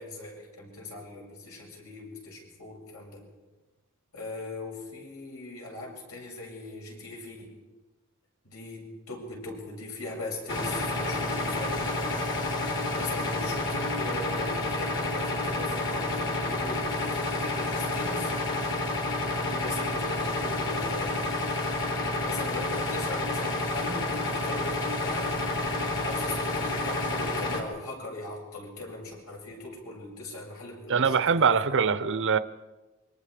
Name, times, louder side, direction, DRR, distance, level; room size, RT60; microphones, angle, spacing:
voice 1, 0.0-3.2 4.1-7.5 8.4-12.2 13.0-18.3 19.4-21.2 22.2-25.3 26.0-31.6, left 2 dB, 75° left, 7.7 m, -39 dB
sound 1, 10.5-27.6, left 2 dB, 55° left, 3.8 m, -29 dB
voice 2, 30.9-32.4, right 6 dB, 60° right, 0.8 m, -23 dB
28.5 x 24.5 x 5.0 m
head